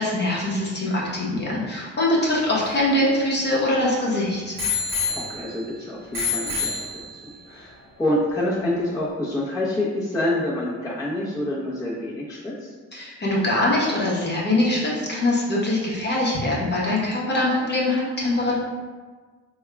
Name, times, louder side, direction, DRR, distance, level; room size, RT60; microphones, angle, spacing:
voice 1, 0.0-4.5 12.9-18.6, left 1 dB, 35° left, -5 dB, 1.0 m, -23 dB
Bicycle bell, 2.3-3.9 4.6-5.7 6.1-7.4 8.1-8.2, left 5 dB, 40° right, 1.3 m, -29 dB
voice 2, 5.1-7.1 7.5-12.7, left 1 dB, 10° left, -8 dB, 0.8 m, -27 dB
3.5 x 2.4 x 3.3 m, 1.4 s
cardioid pair, 90°, 30 cm